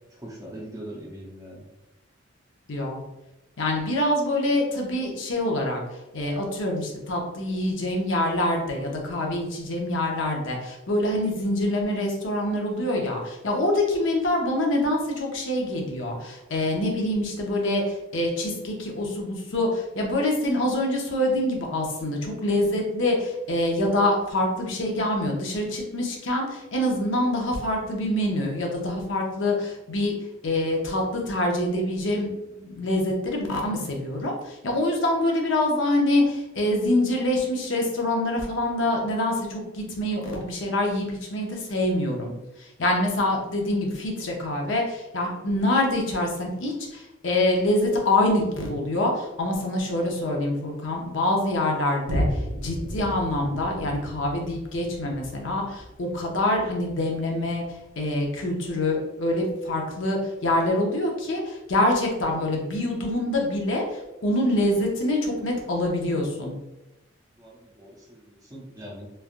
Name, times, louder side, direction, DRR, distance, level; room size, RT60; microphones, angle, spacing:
voice 1, 0.1-1.7 67.4-69.1, right 1 dB, 15° right, -3 dB, 0.6 m, -41 dB
voice 2, 2.7-3.0 3.6-5.8 6.1-30.1 30.4-32.3 32.6-42.3 42.6-57.6 58.0-66.5, left 1 dB, 65° left, 0 dB, 0.6 m, -25 dB
Boom, 52.1-59.0 59.5-59.6, equal, 85° right, 0.7 m, -34 dB
3.2 x 2.3 x 2.5 m, 0.96 s
head